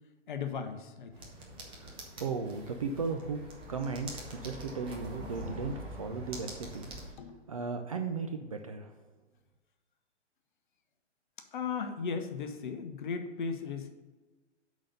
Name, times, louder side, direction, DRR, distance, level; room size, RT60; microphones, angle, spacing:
voice 1, 0.3-1.1 7.2-7.4 11.5-13.9, left 5 dB, 40° left, 7 dB, 0.9 m, -36 dB
sound 1, 1.1-7.1, right 1 dB, 15° right, 1.0 m, -44 dB
voice 2, 1.8-3.4 3.7-6.9 7.5-8.9, right 4 dB, 30° right, 4 dB, 0.4 m, -36 dB
8.7 x 4.1 x 5.3 m, 1.2 s
figure-of-eight pair, 120°, 36 cm